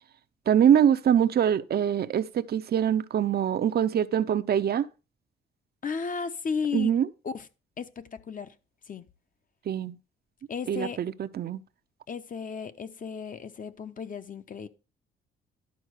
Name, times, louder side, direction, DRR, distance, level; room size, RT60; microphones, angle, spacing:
voice 1, 0.5-4.9 6.7-7.1 9.7-9.9 10.7-11.6, right 9 dB, 50° right, 0.7 m, -24 dB
voice 2, 5.8-7.0 7.2-7.5 7.8-8.5 8.8-9.1 10.5-11.0 12.1-14.7, left 6 dB, 40° left, 1.0 m, -34 dB
11.5 x 4.4 x 6.5 m
cardioid pair, 90°, 20 cm